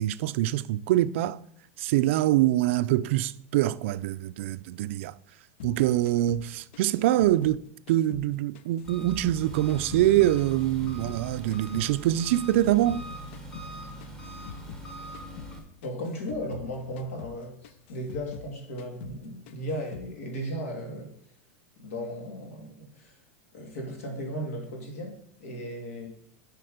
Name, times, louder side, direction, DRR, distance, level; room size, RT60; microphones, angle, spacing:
voice 1, 0.0-1.4 1.8-5.1 5.6-7.6 7.9-13.0, right 14 dB, 60° right, 0.3 m, -24 dB
sound 1, 5.6-8.3 8.5-11.2 11.5-14.9 15.1-15.6 15.8-18.5 18.8-19.2 19.5-20.1, left 8 dB, 55° left, 0.5 m, -45 dB
Engine, 8.8-15.6, right 1 dB, 5° left, 1.0 m, -41 dB
voice 2, 15.8-21.1 21.8-23.2 23.5-26.1, equal, 80° left, 2.3 m, -36 dB
7.8 x 4.8 x 5.0 m
supercardioid pair, 170°, 8 cm